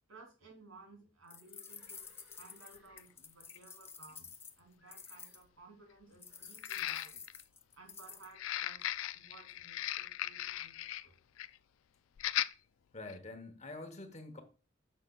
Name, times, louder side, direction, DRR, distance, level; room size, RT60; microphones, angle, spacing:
voice 1, 0.1-2.0 2.4-7.2 7.8-8.8 9.1-11.1, right 3 dB, 80° right, 3.2 m, -58 dB
sound 1, 1.3-5.4 6.2-8.3, left 5 dB, 10° left, 0.4 m, -51 dB
Livestock farm animals working animals, 1.3-4.4 4.8-5.5 6.3-6.7, left 1 dB, 5° right, 2.4 m, -69 dB
sound 2, 1.9-2.0 3.0-3.1 3.5-3.6 6.6-7.4 8.3-11.1 11.4-11.6 12.2-12.5 13.1-13.2, left 13 dB, 85° left, 0.3 m, -38 dB
voice 2, 12.9-14.4, left 2 dB, 35° left, 1.0 m, -46 dB
9.5 x 6.4 x 2.3 m
head